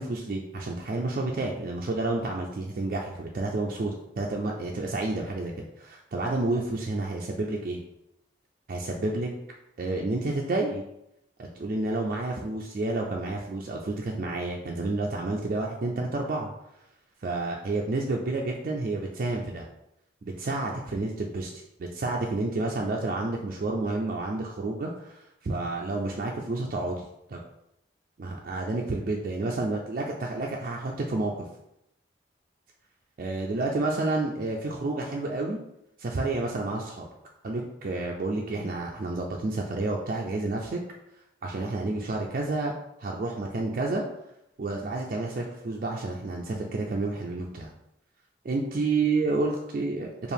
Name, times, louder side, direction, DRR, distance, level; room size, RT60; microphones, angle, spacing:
voice 1, 0.0-7.8 8.7-9.3 9.8-10.8 11.4-16.5 17.2-19.6 20.2-27.4 28.2-31.5 33.2-35.6 36.0-37.1 37.4-40.8 41.4-42.7 43.0-44.0 44.6-47.7 48.4-50.3, right 2 dB, 45° right, -1 dB, 0.4 m, -30 dB
4.5 x 2.5 x 3.4 m, 0.84 s
head